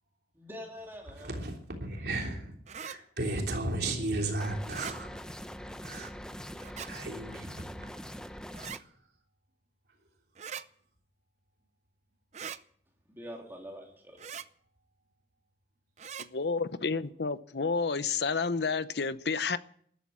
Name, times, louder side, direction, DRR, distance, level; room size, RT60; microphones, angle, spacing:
voice 1, 0.4-1.4 13.1-14.3, equal, 10° right, 3.3 m, -45 dB
voice 2, 1.1-5.2 5.8-6.1 6.8-7.9 8.7-9.0, right 2 dB, 65° right, 3.2 m, -35 dB
sound 1, 2.7-3.0 4.6-5.0 6.6-6.9 8.5-8.8 10.4-10.6 12.3-12.6 14.2-14.5 16.0-16.3, right 7 dB, 40° right, 0.6 m, -41 dB
sound 2, 4.4-8.8, equal, 5° left, 0.7 m, -43 dB
voice 3, 16.3-19.6, left 4 dB, 70° left, 0.8 m, -30 dB
13.5 x 11.5 x 8.4 m
head